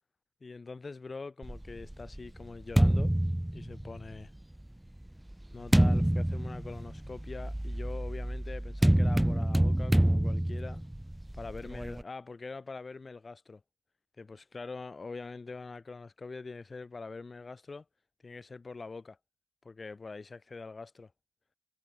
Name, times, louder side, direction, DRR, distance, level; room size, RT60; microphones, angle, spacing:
voice 1, 0.4-3.1 3.5-4.3 5.5-10.8 11.3-13.6 14.2-17.8 18.2-19.2 19.6-21.1, left 4 dB, 25° left, 2.0 m, -43 dB
sound 1, 1.4-4.2 5.0-12.0, right 1 dB, 5° right, 0.6 m, -27 dB
cardioid pair, 95°, 0 cm